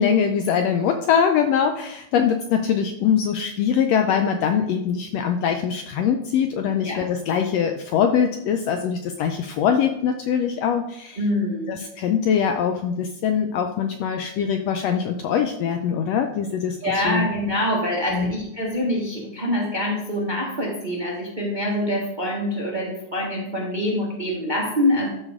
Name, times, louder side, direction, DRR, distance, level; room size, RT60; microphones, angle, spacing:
voice 1, 0.0-11.2 11.7-17.3 18.1-18.3, left 7 dB, 80° left, 5 dB, 1.5 m, -22 dB
voice 2, 11.2-11.7 16.8-25.1, left 1 dB, 30° right, -3 dB, 0.9 m, -25 dB
13.0 x 5.3 x 3.6 m, 0.83 s
omnidirectional pair, 3.4 m